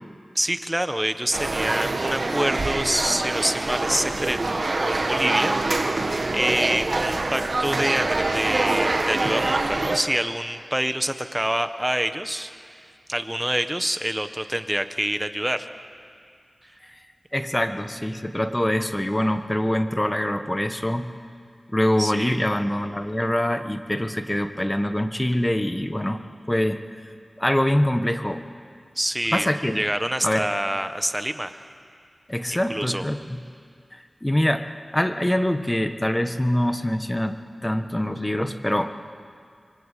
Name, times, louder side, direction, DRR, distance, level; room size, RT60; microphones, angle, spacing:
voice 1, 0.3-5.5 6.3-12.8 13.1-15.7 22.0-22.4 28.9-29.5 29.7-31.6 32.5-33.1, right 1 dB, 10° right, 8 dB, 1.5 m, -26 dB
sound 1, 1.3-10.0, right 2 dB, 60° right, 1.9 m, -25 dB
voice 2, 17.3-21.1 21.7-26.2 26.5-26.8 27.4-28.4 29.3-29.8 30.2-30.4 32.3-33.4 33.9-37.3 37.6-38.9, left 1 dB, 15° left, 8 dB, 1.5 m, -24 dB
27.0 x 23.5 x 8.6 m, 2.2 s
wide cardioid pair, 60°, 0 cm